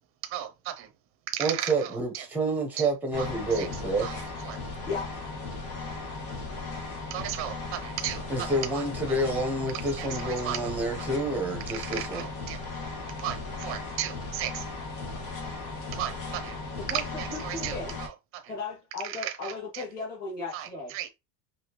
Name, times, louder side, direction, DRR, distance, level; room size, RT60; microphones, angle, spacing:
voice 1, 0.2-0.9 1.3-2.2 2.8-2.9 3.2-3.3 3.5-3.7 4.0-4.2 4.4-4.6 7.1-8.5 8.7-8.8 10.0-10.8 11.7-12.6 13.2-14.7 15.9-16.6 16.9-18.1 19.0-19.8 20.5-21.1, right 12 dB, 35° right, 0.7 m, -35 dB
voice 2, 1.4-4.3 8.3-12.3, right 2 dB, 5° right, 0.9 m, -29 dB
sound 1, 3.1-18.1, left 3 dB, 60° left, 1.9 m, -37 dB
voice 3, 16.8-18.0 18.5-20.9, left 3 dB, 25° left, 1.8 m, -36 dB
5.0 x 3.3 x 3.0 m
cardioid pair, 180°, 38 cm